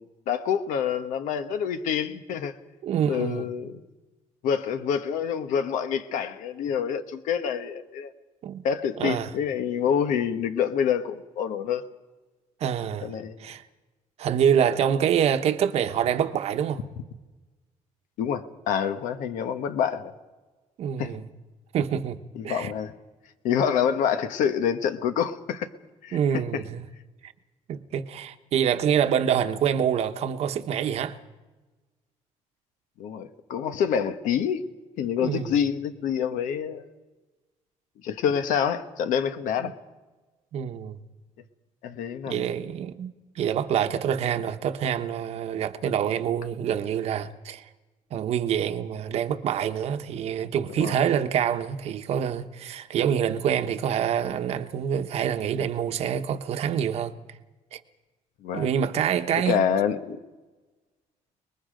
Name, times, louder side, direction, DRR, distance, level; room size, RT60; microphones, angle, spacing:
voice 1, 0.0-2.6 3.1-3.8 4.4-8.1 8.6-11.8 13.0-13.4 18.2-20.1 21.0-21.2 22.3-22.9 23.4-25.7 26.0-26.2 26.5-26.6 33.0-34.6 35.0-36.9 38.0-39.7 41.8-42.5 50.8-51.0 58.4-58.7 59.3-60.2, left 8 dB, 80° left, 1.3 m, -27 dB
voice 2, 2.8-3.5 8.4-8.6 9.0-9.3 12.6-13.1 13.4-13.6 14.2-16.8 20.8-21.2 21.7-22.7 26.1-26.8 27.2-27.3 27.7-31.2 35.2-35.5 39.6-39.7 40.5-41.0 42.3-43.1 43.4-47.7 48.1-57.1 57.7-57.8 58.5-59.6, right 8 dB, 55° right, 1.1 m, -26 dB
30.0 x 20.5 x 5.2 m
cardioid pair, 175°, 13 cm